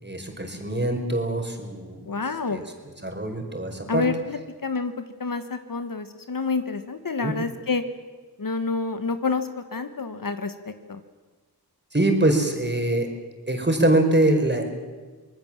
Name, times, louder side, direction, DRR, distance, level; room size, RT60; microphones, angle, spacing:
voice 1, 0.0-2.2 2.5-2.7 3.0-4.0 7.2-7.3 11.9-13.1 13.5-14.6, right 1 dB, 25° right, 3 dB, 4.7 m, -23 dB
voice 2, 2.1-2.6 3.9-4.9 5.2-7.8 8.4-10.5 10.9-11.0, left 4 dB, 55° left, 9 dB, 1.5 m, -28 dB
25.5 x 19.0 x 7.5 m, 1.4 s
cardioid pair, 50°, 39 cm